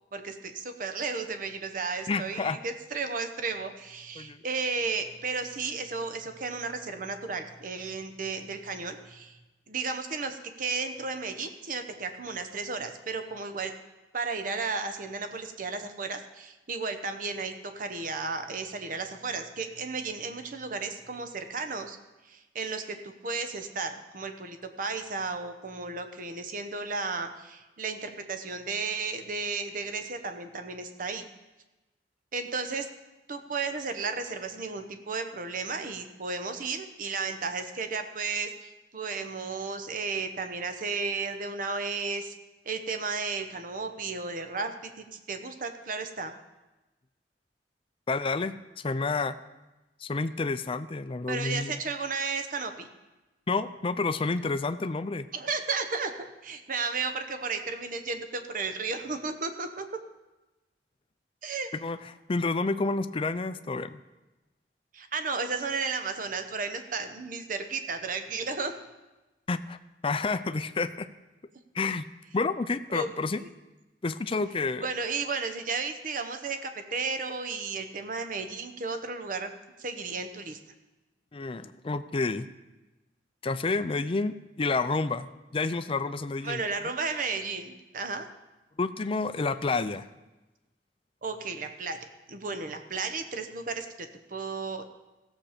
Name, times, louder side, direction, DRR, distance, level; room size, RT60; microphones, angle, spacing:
voice 1, 0.1-9.4 9.7-13.7 14.1-22.0 22.2-31.3 32.3-32.9 33.3-42.3 42.7-46.3 51.3-52.9 55.3-59.8 61.4-61.7 64.9-68.7 72.9-73.5 74.8-79.5 79.8-80.6 86.4-88.3 91.2-92.0 92.3-94.8, right 4 dB, 50° right, 7 dB, 0.9 m, -34 dB
voice 2, 2.1-2.6 4.2-4.4 48.1-48.6 48.8-49.4 50.0-51.8 53.5-55.3 61.8-62.0 62.3-64.0 69.5-69.8 70.0-71.1 71.7-72.1 72.3-73.4 74.0-74.8 81.3-82.5 83.4-86.6 88.8-90.1, left 3 dB, 30° left, 11 dB, 0.5 m, -29 dB
16.0 x 7.2 x 5.0 m, 1.1 s
head